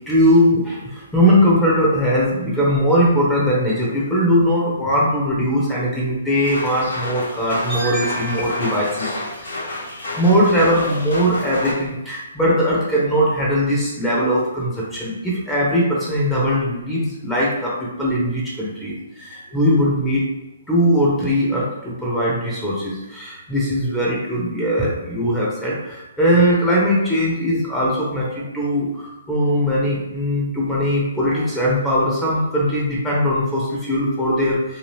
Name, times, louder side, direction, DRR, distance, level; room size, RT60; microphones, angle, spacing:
voice 1, 0.1-9.9 10.2-20.2 20.7-34.8, equal, 5° left, -6 dB, 0.8 m, -20 dB
sound 1, 6.4-11.7, left 1 dB, 70° left, 1.1 m, -30 dB
2.8 x 2.4 x 3.3 m, 0.99 s
figure-of-eight pair, 135°, 0 cm